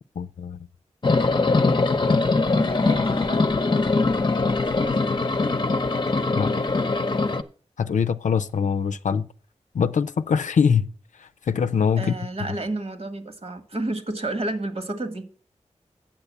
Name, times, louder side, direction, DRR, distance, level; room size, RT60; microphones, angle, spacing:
voice 1, 0.2-0.6 6.3-6.5 7.8-9.3 9.7-10.9 11.5-12.1, left 6 dB, 85° left, 0.5 m, -23 dB
sound 1, 1.0-7.4, left 3 dB, 40° left, 0.8 m, -22 dB
voice 2, 2.5-3.5 11.9-15.4, right 2 dB, 55° right, 1.5 m, -31 dB
8.9 x 6.8 x 7.0 m
wide cardioid pair, 60°, 12 cm